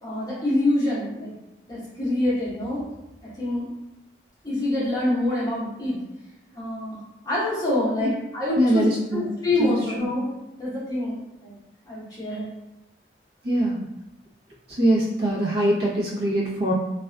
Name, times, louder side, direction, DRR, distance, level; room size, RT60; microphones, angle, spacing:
voice 1, 0.0-1.3 1.7-2.8 3.4-3.7 4.4-6.0 6.5-7.0 7.2-8.9 9.1-10.3 10.6-11.6 11.8-12.5, left 1 dB, 20° left, -9 dB, 0.8 m, -26 dB
voice 2, 8.6-9.2 9.6-9.8 13.4-13.8 14.8-16.7, right 1 dB, 60° right, -6 dB, 0.7 m, -22 dB
2.4 x 2.3 x 2.2 m, 0.95 s
head